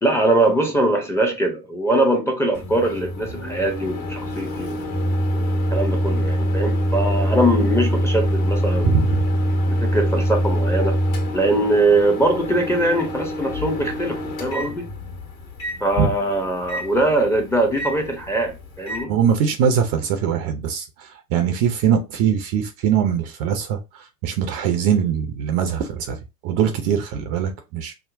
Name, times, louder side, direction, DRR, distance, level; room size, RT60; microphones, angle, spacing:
voice 1, 0.0-4.8 5.3-9.0 9.7-11.0 11.3-14.9 15.8-19.1, right 1 dB, 5° left, 0.7 m, -22 dB
Microwave oven, 2.5-19.0, equal, 50° left, 1.6 m, -24 dB
voice 2, 8.8-9.2 16.0-16.1 19.1-20.9 21.3-23.8 24.2-26.2 26.4-27.9, right 8 dB, 35° right, 0.6 m, -21 dB
5.7 x 2.1 x 2.5 m
figure-of-eight pair, 90°, 49 cm